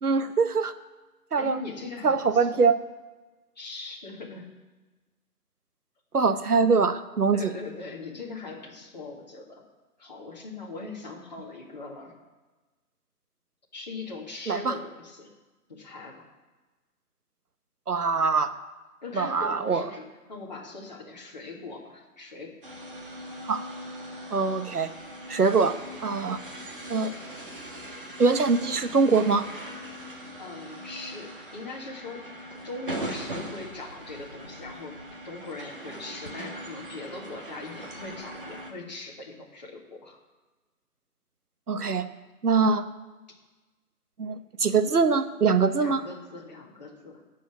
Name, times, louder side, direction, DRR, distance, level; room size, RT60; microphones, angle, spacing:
voice 1, 0.0-0.7 1.3-1.6 2.0-2.8 6.1-7.5 14.5-14.8 17.9-18.5 19.1-19.8 23.4-23.6 24.3-24.9 25.3-26.4 26.9-27.1 28.2-29.5 41.7-42.1 42.4-42.8 44.2-46.0, right 4 dB, 70° right, 10 dB, 1.2 m, -23 dB
voice 2, 1.4-2.6 3.6-4.5 6.5-6.7 7.3-9.6 10.0-12.1 13.7-15.3 15.7-16.2 19.0-22.5 30.4-35.0 35.2-40.2 45.8-47.2, left 3 dB, 25° left, -3 dB, 2.0 m, -40 dB
sound 1, 22.6-38.7, right 1 dB, 35° right, 1.6 m, -40 dB
12.0 x 7.2 x 8.4 m, 1.2 s
figure-of-eight pair, 170°, 47 cm